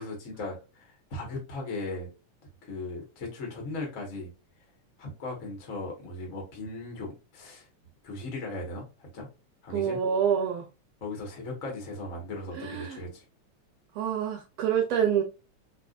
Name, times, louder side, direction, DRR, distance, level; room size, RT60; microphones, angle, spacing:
voice 1, 0.0-2.1 2.6-4.3 5.0-7.7 8.0-9.3 9.6-10.0 11.0-13.2, left 2 dB, 35° left, 1.3 m, -37 dB
voice 2, 9.7-10.6 12.5-13.0 13.9-15.2, right 8 dB, 75° right, 1.6 m, -27 dB
4.8 x 3.4 x 2.5 m
omnidirectional pair, 3.5 m